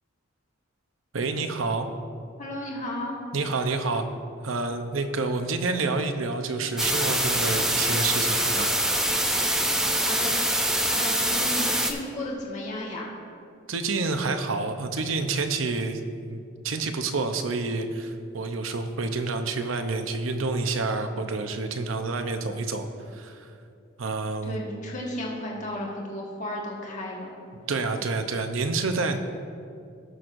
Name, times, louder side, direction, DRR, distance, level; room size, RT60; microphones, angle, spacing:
voice 1, 1.1-1.9 3.3-4.0 4.4-8.7 13.7-16.0 16.3-16.4 16.6-23.5 24.0-24.6 27.7-29.2, right 3 dB, 80° right, 7 dB, 0.7 m, -28 dB
voice 2, 2.4-3.1 10.0-10.4 10.8-13.1 24.4-27.3, left 1 dB, 40° left, -3 dB, 1.4 m, -34 dB
sound 1, 6.8-11.9, right 1 dB, 5° right, 0.5 m, -24 dB
17.5 x 6.2 x 2.6 m, 2.4 s
head